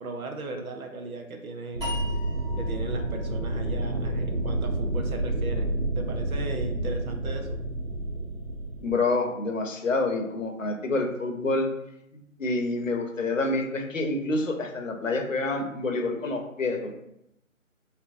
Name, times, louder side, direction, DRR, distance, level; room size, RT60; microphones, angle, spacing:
voice 1, 0.0-2.0 2.6-7.6, right 3 dB, 90° right, 4 dB, 0.7 m, -37 dB
sound 1, 1.7-8.9, right 1 dB, 50° right, 0.6 m, -29 dB
sound 2, 1.8-5.0, left 1 dB, 20° right, 1.2 m, -41 dB
voice 2, 8.8-11.7 12.1-16.9, left 2 dB, 65° left, 3 dB, 0.7 m, -27 dB
3.5 x 2.8 x 2.5 m, 0.81 s
figure-of-eight pair, 175°, 42 cm